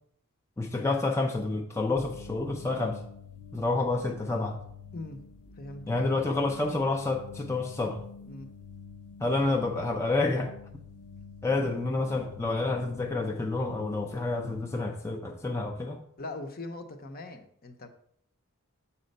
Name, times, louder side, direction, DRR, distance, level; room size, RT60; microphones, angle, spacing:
voice 1, 0.6-3.0 3.5-4.6 5.9-8.0 9.2-10.5 11.4-16.0, left 2 dB, 10° left, 1 dB, 0.5 m, -29 dB
sound 1, 1.9-14.8, left 4 dB, 85° left, 0.7 m, -47 dB
voice 2, 5.6-5.9 8.3-8.5 16.2-17.9, left 2 dB, 45° left, 7 dB, 0.8 m, -40 dB
7.4 x 4.3 x 5.3 m, 0.70 s
head